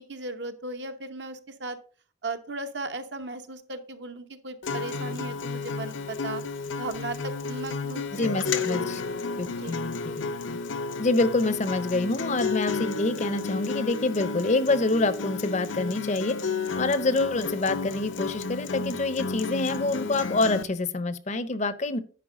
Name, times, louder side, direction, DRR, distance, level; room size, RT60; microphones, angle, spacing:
voice 1, 0.0-1.8 2.2-6.4 6.8-8.9 9.6-9.8, right 2 dB, 60° right, 8 dB, 0.9 m, -36 dB
Acoustic guitar, 4.6-20.6, left 4 dB, 80° left, 0.7 m, -32 dB
voice 2, 8.1-9.0 9.4-10.6 11.0-16.4 16.8-22.0, left 2 dB, 35° left, 14 dB, 0.6 m, -26 dB
10.0 x 4.6 x 4.9 m, 0.41 s
head